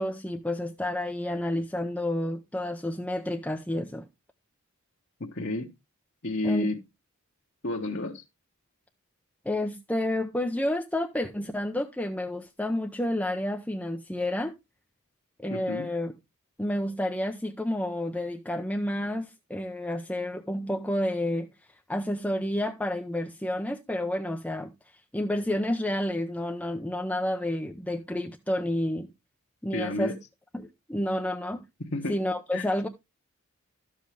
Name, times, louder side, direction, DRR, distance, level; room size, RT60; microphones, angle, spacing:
voice 1, 0.0-4.0 6.4-6.7 9.4-14.5 15.4-16.1 16.6-29.1 29.6-30.2 30.5-31.6 32.1-32.9, left 1 dB, 5° left, 0.7 m, -30 dB
voice 2, 5.2-5.7 6.2-6.8 7.6-8.2 15.5-15.9 29.7-30.2 31.9-32.1 32.5-32.7, left 2 dB, 50° left, 1.4 m, -31 dB
13.0 x 7.5 x 3.3 m
head